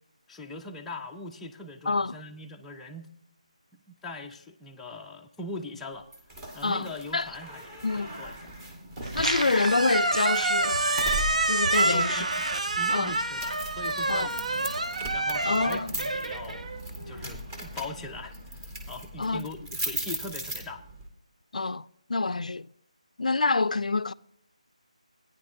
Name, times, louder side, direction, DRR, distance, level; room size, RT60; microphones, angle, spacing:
voice 1, 0.3-3.1 3.7-6.1 6.5-8.5 11.7-14.7 15.1-16.7 17.0-20.8, left 2 dB, 5° left, 0.4 m, -41 dB
voice 2, 1.9-2.2 6.6-7.3 7.8-8.1 9.1-10.8 11.4-12.2 12.9-13.1 14.1-14.3 15.4-15.9 19.2-19.5 21.5-22.7 23.2-24.1, left 3 dB, 75° left, 0.3 m, -27 dB
sound 1, 6.1-21.1, right 1 dB, 20° right, 1.2 m, -39 dB
Squeak, 9.0-17.3, right 2 dB, 70° right, 0.8 m, -27 dB
15.5 x 9.5 x 2.6 m
figure-of-eight pair, 165°, 4 cm